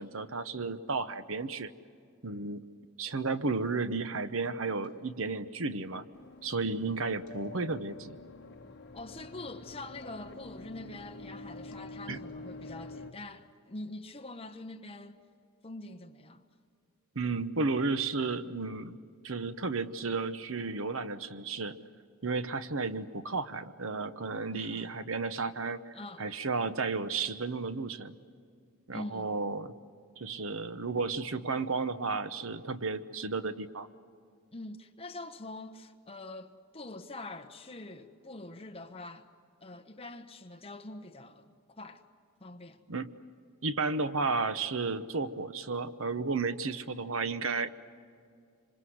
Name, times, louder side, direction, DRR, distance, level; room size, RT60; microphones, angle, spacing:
voice 1, 0.0-1.7 2.2-2.6 3.0-6.0 6.4-8.2 12.1-12.2 17.1-19.0 19.2-21.7 22.2-28.2 28.9-29.7 30.2-33.9 42.9-43.1 43.6-47.7, right 4 dB, 60° right, 1.0 m, -33 dB
sound 1, 4.8-5.7 7.3-8.2 10.0-10.6 11.7-11.9, left 5 dB, 65° left, 2.7 m, -52 dB
sound 2, 6.1-13.1, left 2 dB, 50° left, 1.7 m, -47 dB
voice 2, 8.9-15.3 15.6-16.4 24.5-24.9 25.9-26.3 28.9-29.3 34.5-39.3 39.6-42.0 42.4-42.8, left 2 dB, 25° left, 1.3 m, -44 dB
26.5 x 26.0 x 7.9 m
head